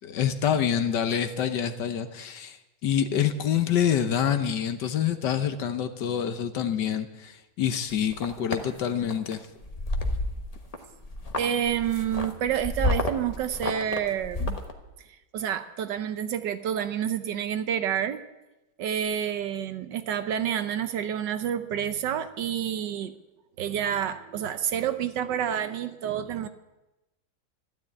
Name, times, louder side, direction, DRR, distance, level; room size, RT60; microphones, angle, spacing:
voice 1, 0.0-9.4, left 9 dB, 65° left, 9 dB, 1.4 m, -27 dB
sound 1, 7.9-8.6 9.1-9.3 9.6-10.8 11.0-14.7, left 2 dB, 25° left, 1.1 m, -30 dB
voice 2, 11.4-14.6 15.3-18.2 18.8-23.1 23.6-26.5, right 9 dB, 70° right, 11 dB, 1.3 m, -29 dB
13.0 x 12.5 x 8.7 m, 1.0 s
omnidirectional pair, 2.2 m